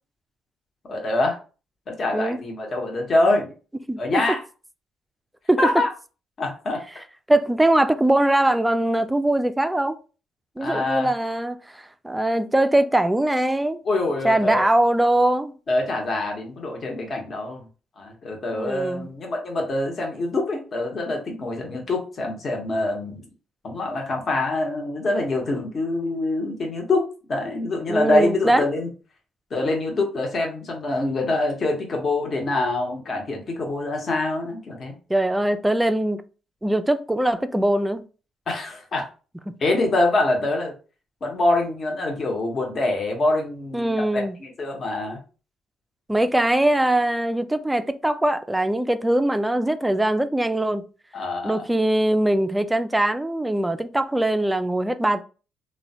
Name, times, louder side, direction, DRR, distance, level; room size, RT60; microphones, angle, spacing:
voice 1, 0.9-1.4 1.9-3.5 4.0-4.4 5.6-5.9 6.4-6.8 10.6-11.1 13.8-14.6 15.7-17.6 18.0-23.2 23.6-28.9 29.5-35.0 38.5-39.1 39.6-40.7 41.2-45.2 51.1-51.6, left 2 dB, 45° left, 0.8 m, -25 dB
voice 2, 3.9-4.2 5.5-5.6 7.3-10.0 10.6-13.8 14.2-15.5 18.5-19.1 27.9-28.7 35.1-36.2 36.6-38.0 39.5-39.6 43.7-44.4 46.1-50.8 51.4-55.2, right 1 dB, 10° right, 0.3 m, -21 dB
3.1 x 2.1 x 2.7 m
cardioid pair, 90°, 0 cm